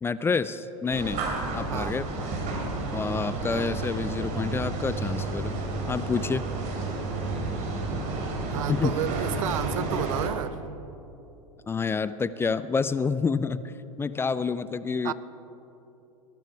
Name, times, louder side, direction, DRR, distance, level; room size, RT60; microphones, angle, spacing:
voice 1, 0.0-1.3 1.5-2.1 2.9-5.6 5.9-6.4 8.7-8.9 11.7-13.7 14.0-15.1, left 5 dB, 15° left, 15 dB, 0.4 m, -28 dB
sound 1, 0.9-10.3, right 3 dB, 45° right, 3.0 m, -31 dB
voice 2, 8.5-10.6 15.0-15.1, right 12 dB, 70° right, 17 dB, 0.5 m, -31 dB
19.0 x 11.5 x 4.7 m, 2.9 s
hypercardioid pair, 95°, 18 cm